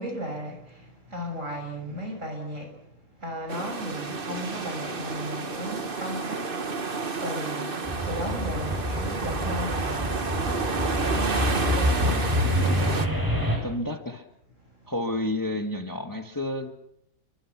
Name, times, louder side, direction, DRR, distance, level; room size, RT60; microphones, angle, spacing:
voice 1, 0.0-2.8 3.2-12.2 13.1-13.7 14.6-14.8, equal, 60° right, 7.2 m, -36 dB
sound 1, 3.5-13.1, right 4 dB, 40° right, 1.6 m, -31 dB
sound 2, 7.8-13.6, equal, 15° right, 7.0 m, -27 dB
voice 2, 12.1-12.8 13.6-14.3 14.9-16.7, left 1 dB, 15° left, 1.5 m, -31 dB
29.5 x 24.0 x 6.0 m
omnidirectional pair, 1.5 m